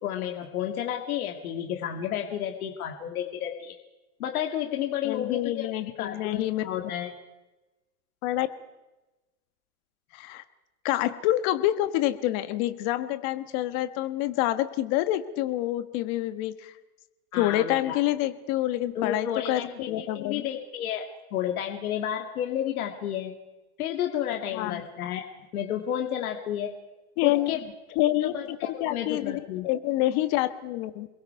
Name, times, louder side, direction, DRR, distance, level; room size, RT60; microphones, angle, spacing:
voice 1, 0.0-3.8 4.2-5.7 6.0-7.1 17.3-18.0 18.9-23.4 23.8-25.3 25.5-26.8 27.2-27.7 28.2-29.7, left 10 dB, 75° left, 3 dB, 2.6 m, -31 dB
voice 2, 5.0-6.6 8.2-8.5 10.1-10.4 10.8-16.7 17.3-20.4 24.5-24.8 27.2-27.6 27.9-28.3 28.8-29.4 29.6-31.1, left 15 dB, 40° left, 11 dB, 1.4 m, -27 dB
28.5 x 22.0 x 4.7 m, 1.1 s
supercardioid pair, 150°, 44 cm